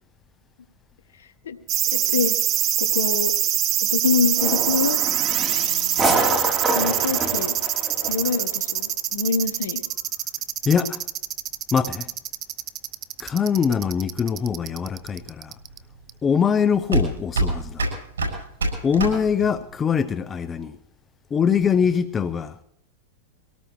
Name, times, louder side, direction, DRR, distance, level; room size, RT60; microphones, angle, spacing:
sound 1, 1.7-15.8 16.1-16.2, right 12 dB, 40° right, 0.7 m, -24 dB
voice 1, 1.9-2.4 2.8-3.3 3.9-5.0 6.7-7.6 8.1-9.8, left 5 dB, 85° left, 1.1 m, -25 dB
sound 2, 4.4-8.4, right 2 dB, 20° right, 3.5 m, -26 dB
voice 2, 10.7-11.0 11.7-12.1 13.2-15.5 16.2-17.9 18.8-20.8 21.3-22.5, left 7 dB, 20° left, 0.6 m, -22 dB
sound 3, 14.1-19.8, right 2 dB, 90° right, 7.1 m, -27 dB
24.0 x 18.0 x 3.1 m
hypercardioid pair, 115°, 0 cm